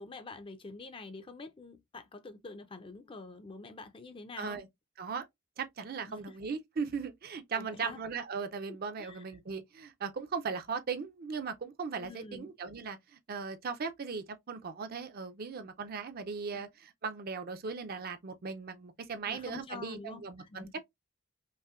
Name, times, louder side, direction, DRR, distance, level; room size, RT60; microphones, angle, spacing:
voice 1, 0.0-4.6 6.1-6.2 7.5-8.0 8.7-9.2 12.0-12.5 16.5-16.6 19.3-20.7, left 3 dB, 25° left, 0.4 m, -46 dB
voice 2, 4.4-4.7 5.0-5.3 5.6-20.9, right 5 dB, 45° right, 0.4 m, -38 dB
5.3 x 2.1 x 2.3 m
head